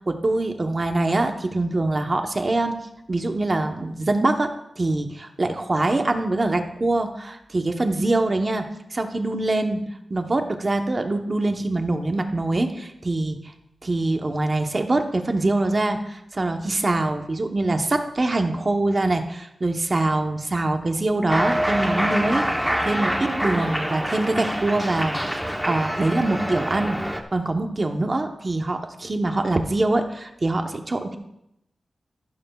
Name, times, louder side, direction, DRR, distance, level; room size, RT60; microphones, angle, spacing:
voice 1, 0.0-2.8 3.1-4.5 4.8-9.8 10.1-13.4 13.8-31.2, right 2 dB, 30° right, 5 dB, 0.9 m, -24 dB
Cheering, 21.3-27.2, equal, ahead, 0.9 m, -26 dB
14.5 x 12.5 x 2.3 m, 0.80 s
wide cardioid pair, 165°, 0 cm